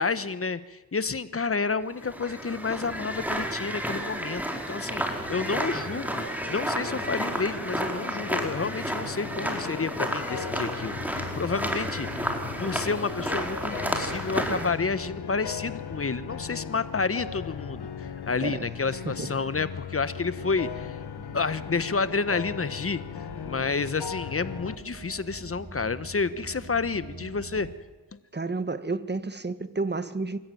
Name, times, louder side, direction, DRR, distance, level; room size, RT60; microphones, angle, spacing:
voice 1, 0.0-12.3 12.6-21.0 21.3-23.0 23.4-27.7 28.1-28.2, left 4 dB, 35° left, 14 dB, 1.3 m, -30 dB
sound 1, 1.9-14.7, right 1 dB, 5° right, 4.3 m, -32 dB
sound 2, 5.0-24.8, left 8 dB, 75° left, 1.6 m, -38 dB
sound 3, 10.9-27.8, right 2 dB, 50° right, 3.8 m, -47 dB
voice 2, 28.3-30.4, right 3 dB, 25° right, 12 dB, 1.6 m, -31 dB
25.0 x 14.0 x 9.4 m, 1.2 s
cardioid pair, 55°, 40 cm